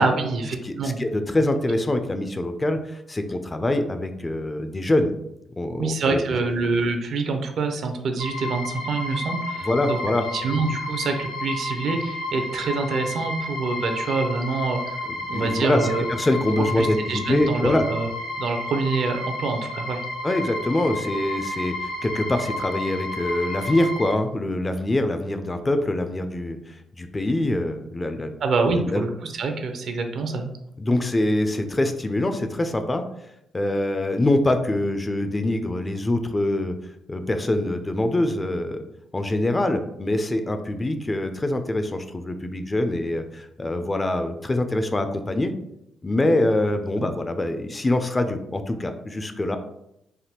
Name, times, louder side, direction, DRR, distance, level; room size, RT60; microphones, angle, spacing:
voice 1, 0.0-1.0 5.8-10.0 10.3-15.0 15.3-16.1 16.6-18.1 18.4-20.0 28.4-30.5 47.0-47.1, right 4 dB, 60° right, 6 dB, 0.5 m, -26 dB
voice 2, 0.6-5.2 5.6-6.5 9.6-10.2 15.3-15.8 16.1-17.9 20.2-28.3 28.7-29.0 30.8-33.0 33.5-36.7 37.1-38.8 39.1-45.5 46.0-49.6, left 1 dB, 20° left, 7 dB, 0.3 m, -24 dB
sound 1, 8.2-24.1, left 1 dB, 80° left, 0.6 m, -32 dB
3.3 x 2.1 x 2.8 m, 0.80 s
cardioid pair, 90°, 0 cm